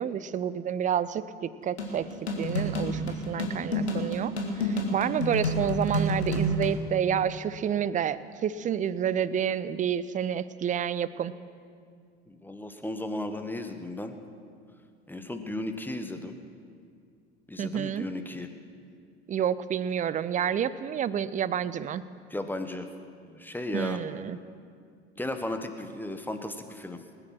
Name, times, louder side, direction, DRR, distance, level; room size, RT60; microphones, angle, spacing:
voice 1, 0.0-2.1 2.4-11.3 17.6-18.1 19.3-22.1 23.7-24.4, right 9 dB, 25° right, 16 dB, 0.5 m, -29 dB
sound 1, 1.8-6.8, equal, 85° left, 1.9 m, -29 dB
voice 2, 12.3-14.2 15.1-16.4 17.5-18.5 22.3-22.9 23.3-24.0 25.2-27.0, left 1 dB, 5° left, 7 dB, 1.3 m, -35 dB
19.5 x 10.0 x 6.1 m, 2.2 s
figure-of-eight pair, 70°, 32 cm